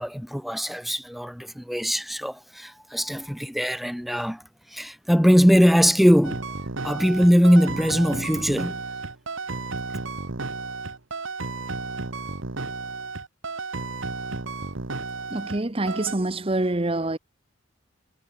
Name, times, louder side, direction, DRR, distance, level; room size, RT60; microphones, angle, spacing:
voice 1, 0.0-4.4 4.7-6.5 6.8-8.8, equal, ahead, 1.8 m, -21 dB
sound 1, 6.2-15.6 15.9-16.1, right 3 dB, 70° right, 1.4 m, -33 dB
voice 2, 15.3-17.2, right 2 dB, 25° right, 0.9 m, -26 dB
head